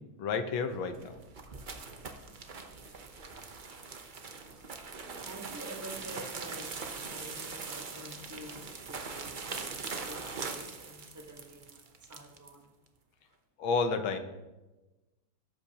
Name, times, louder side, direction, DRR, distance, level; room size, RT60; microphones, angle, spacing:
voice 1, 0.2-1.1 13.6-14.2, left 4 dB, 85° left, 1.7 m, -30 dB
sound 1, 0.8-12.5, right 4 dB, 55° right, 0.5 m, -42 dB
voice 2, 1.7-3.4 4.5-4.7 5.0-6.7 7.1-12.7, right 1 dB, 15° right, 0.7 m, -49 dB
17.5 x 8.4 x 2.9 m
omnidirectional pair, 2.1 m